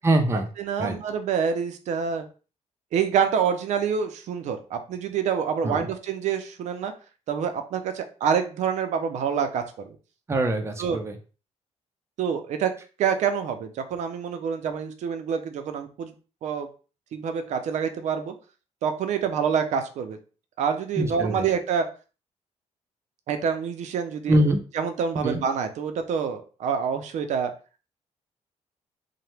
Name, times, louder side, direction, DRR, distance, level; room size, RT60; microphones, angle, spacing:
voice 1, 0.0-0.5 0.8-1.0 5.6-5.8 10.3-11.2 21.0-21.4 24.3-24.6 25.2-25.4, right 1 dB, 20° right, 5 dB, 0.5 m, -23 dB
voice 2, 0.6-2.3 2.9-6.9 7.3-10.0 10.8-11.0 12.2-12.7 13.0-16.1 16.4-16.7 17.1-18.3 18.8-20.2 20.6-21.9 23.3-24.4 24.7-27.5, right 7 dB, 75° right, 7 dB, 0.5 m, -27 dB
2.8 x 2.1 x 3.2 m, 0.36 s
cardioid pair, 120°, 12 cm